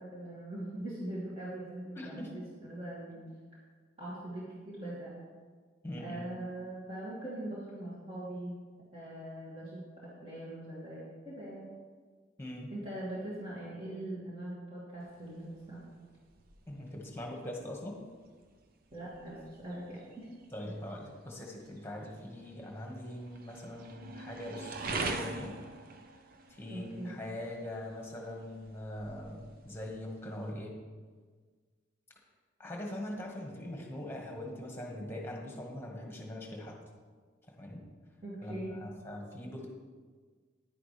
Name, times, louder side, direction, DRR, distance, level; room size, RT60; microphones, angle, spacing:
voice 1, 0.0-3.2 4.0-5.1 6.0-8.6 8.9-11.7 12.7-15.8 18.9-20.3 26.7-27.2 38.2-38.7, right 1 dB, 30° right, -9 dB, 2.4 m, -41 dB
voice 2, 1.9-2.3 5.8-6.3 12.4-12.7 16.7-18.0 20.5-25.6 26.5-30.8 32.6-36.8 37.5-37.9 38.4-39.7, left 1 dB, 10° left, 0 dB, 1.6 m, -42 dB
sound 1, 15.0-30.5, right 3 dB, 50° right, 0.7 m, -45 dB
10.0 x 10.0 x 3.4 m, 1.5 s
head